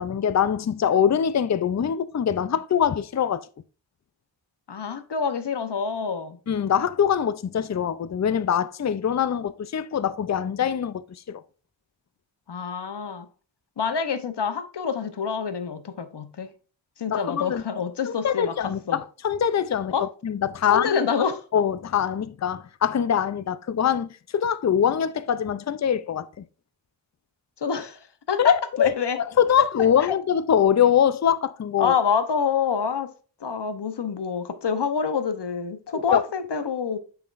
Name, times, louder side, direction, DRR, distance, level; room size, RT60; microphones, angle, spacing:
voice 1, 0.0-3.4 6.5-11.4 17.1-17.6 18.2-19.9 20.2-20.9 21.5-26.3 28.4-28.9 29.4-31.9 35.9-36.2, left 8 dB, 40° left, 0.5 m, -23 dB
voice 2, 4.7-6.4 12.5-13.3 13.8-16.5 17.0-19.0 19.9-20.1 20.6-21.5 27.6-28.0 28.3-29.2 30.0-30.1 31.8-33.1 33.4-37.0, left 6 dB, 60° left, 0.9 m, -27 dB
7.1 x 5.8 x 2.5 m
wide cardioid pair, 60°, 46 cm